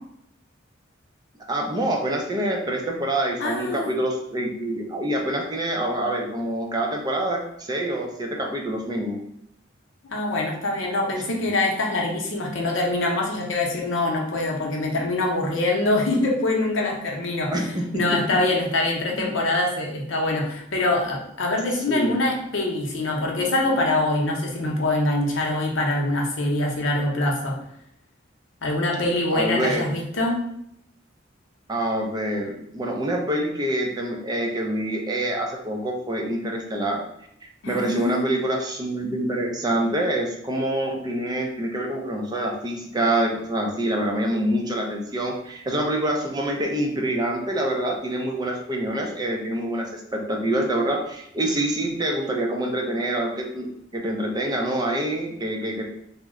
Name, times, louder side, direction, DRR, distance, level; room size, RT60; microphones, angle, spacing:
voice 1, 1.5-9.2 17.5-18.2 21.9-22.2 29.3-29.9 31.7-37.0 37.4-53.7 53.9-55.8, right 1 dB, 20° right, 1 dB, 0.4 m, -26 dB
voice 2, 3.4-3.9 10.1-27.6 28.6-30.3 37.6-38.3, left 2 dB, 70° left, 0 dB, 0.7 m, -24 dB
2.8 x 2.1 x 3.6 m, 0.74 s
head